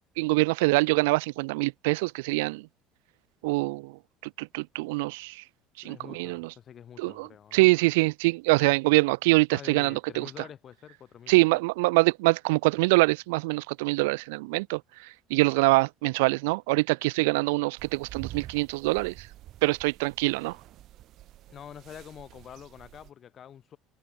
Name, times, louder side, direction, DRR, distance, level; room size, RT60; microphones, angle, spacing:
voice 1, 0.2-2.7 3.4-3.9 4.4-5.4 5.8-6.5 7.0-10.3 11.3-14.8 15.3-19.3 19.6-20.6, right 25 dB, 90° right, 0.3 m, -24 dB
voice 2, 5.8-7.7 9.5-11.6 21.5-23.8, left 9 dB, 45° left, 1.4 m, -47 dB
sound 1, 17.8-23.1, right 14 dB, 55° right, 1.5 m, -47 dB
supercardioid pair, 105°, 0 cm